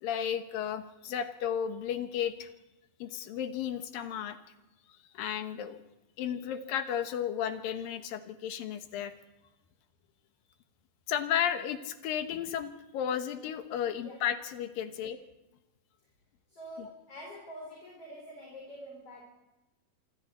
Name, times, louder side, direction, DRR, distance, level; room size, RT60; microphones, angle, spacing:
voice 1, 0.0-2.5 3.0-4.4 5.1-5.8 6.2-9.1 11.1-15.2 16.8-16.9, left 9 dB, 70° left, 8 dB, 2.8 m, -33 dB
voice 2, 16.5-19.2, equal, 40° left, -1 dB, 5.0 m, -46 dB
26.0 x 24.5 x 4.3 m, 0.99 s
omnidirectional pair, 4.4 m